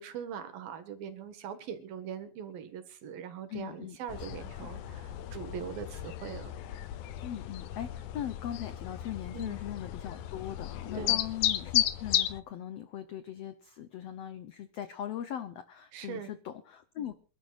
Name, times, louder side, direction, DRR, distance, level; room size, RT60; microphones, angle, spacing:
voice 1, 0.0-6.5 9.3-9.6 10.9-11.2 15.9-16.3, right 8 dB, 75° right, 8 dB, 3.5 m, -41 dB
voice 2, 3.5-4.7 7.2-17.1, left 11 dB, 90° left, 11 dB, 1.4 m, -40 dB
sound 1, 4.1-12.4, left 12 dB, 70° left, 2.1 m, -34 dB
28.0 x 12.0 x 2.5 m, 0.35 s
omnidirectional pair, 4.1 m